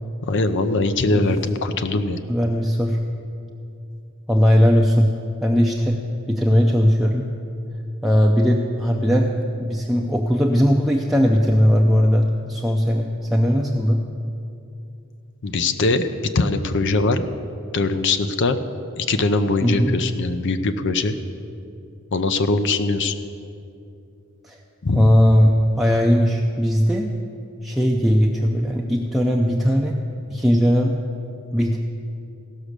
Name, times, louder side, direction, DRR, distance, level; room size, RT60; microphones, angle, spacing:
voice 1, 0.3-2.2 15.4-16.1 16.3-17.2 17.7-18.6 19.0-21.1 22.1-23.1 24.8-25.1, left 3 dB, 60° left, 10 dB, 0.6 m, -21 dB
voice 2, 2.3-3.0 4.3-5.1 5.4-7.3 8.0-9.3 9.6-14.0 19.6-19.9 24.4-24.6 24.9-27.1 27.6-30.0 30.3-31.0 31.5-31.8, equal, ahead, -1 dB, 0.5 m, -18 dB
16.0 x 6.1 x 6.6 m, 2.6 s
head